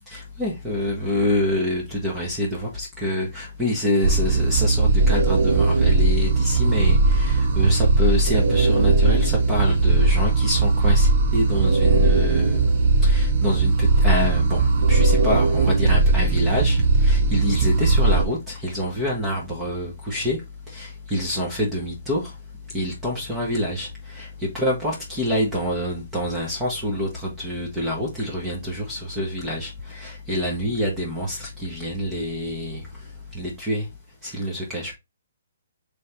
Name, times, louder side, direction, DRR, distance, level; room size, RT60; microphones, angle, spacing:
voice 1, 0.1-12.6 13.0-20.4 20.7-22.4 22.7-33.9 34.2-35.0, equal, 10° right, 1.2 m, -26 dB
sound 1, 4.0-18.2, right 3 dB, 50° right, 1.0 m, -19 dB
3.4 x 3.3 x 4.3 m
hypercardioid pair, 160°, 0 cm